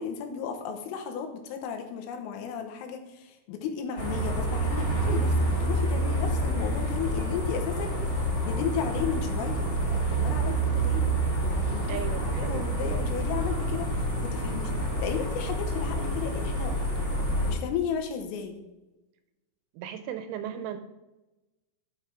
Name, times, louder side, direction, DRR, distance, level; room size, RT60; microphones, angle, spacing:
voice 1, 0.0-14.7 15.0-16.8 17.5-18.6, left 7 dB, 90° left, 5 dB, 3.7 m, -34 dB
sound 1, 4.0-17.5, right 1 dB, 15° left, 2.7 m, -28 dB
voice 2, 11.9-12.6 19.7-20.8, right 9 dB, 85° right, 9 dB, 2.9 m, -36 dB
12.5 x 6.1 x 4.8 m, 1.0 s
omnidirectional pair, 5.8 m